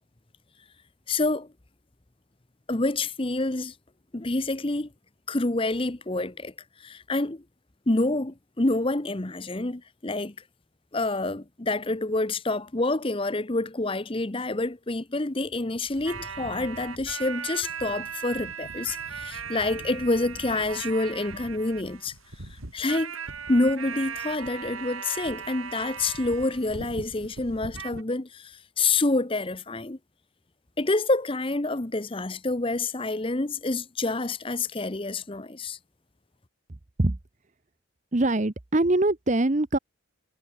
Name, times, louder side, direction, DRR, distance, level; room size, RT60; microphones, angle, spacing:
voice 1, 1.1-1.5 2.7-3.7 4.1-4.9 5.3-6.5 6.8-7.4 7.9-10.3 10.9-22.1 22.7-23.2 23.5-30.0 30.8-35.8, left 2 dB, 25° left, 0.9 m, -27 dB
sound 1, 15.9-28.0, right 6 dB, 90° right, 3.0 m, -38 dB
voice 2, 38.1-39.8, right 2 dB, 35° right, 0.9 m, -23 dB
head